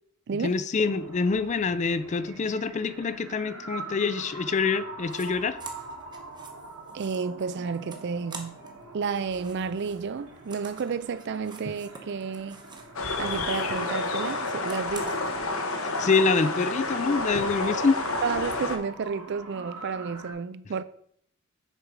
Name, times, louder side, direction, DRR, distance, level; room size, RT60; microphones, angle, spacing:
voice 1, 0.4-5.6 15.8-18.0, left 4 dB, 35° left, 0.4 m, -26 dB
sound 1, 0.7-20.3, right 3 dB, 80° right, 1.8 m, -44 dB
sound 2, 5.0-5.3 5.6-8.8 9.1-13.0 13.2-15.3, right 4 dB, 20° right, 0.9 m, -47 dB
voice 2, 6.9-8.6 8.9-12.6 13.2-15.3 17.6-17.8 18.2-20.8, right 5 dB, 50° right, 0.4 m, -31 dB
sound 3, 13.0-18.8, left 2 dB, 70° left, 0.9 m, -29 dB
6.7 x 4.7 x 4.9 m
head